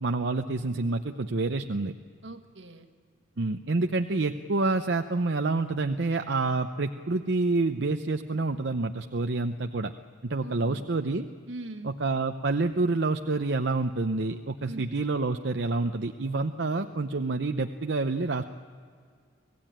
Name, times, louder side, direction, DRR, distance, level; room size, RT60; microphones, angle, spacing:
voice 1, 0.0-1.9 3.4-9.9 10.2-11.2 11.8-18.4, right 3 dB, 70° right, 6 dB, 0.7 m, -28 dB
voice 2, 2.2-2.9 10.4-10.9 11.5-12.0 14.6-14.9, right 2 dB, 85° right, 5 dB, 1.8 m, -41 dB
25.5 x 17.0 x 8.8 m, 2.1 s
head